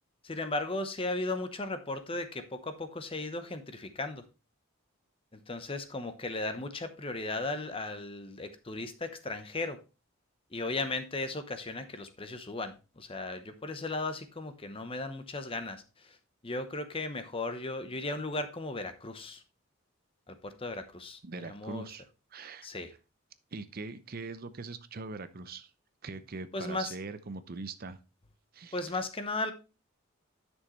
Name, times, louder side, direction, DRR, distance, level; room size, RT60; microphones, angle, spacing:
voice 1, 0.2-4.2 5.3-9.8 10.5-16.2 16.4-19.4 20.3-21.9 22.6-22.9 26.5-26.9 28.7-29.5, left 2 dB, 25° left, 9 dB, 0.9 m, -36 dB
voice 2, 21.2-22.0 22.3-22.7 23.5-25.7 26.0-28.0 28.5-29.0, right 3 dB, 45° right, 12 dB, 0.6 m, -42 dB
10.5 x 6.3 x 3.1 m, 0.29 s
head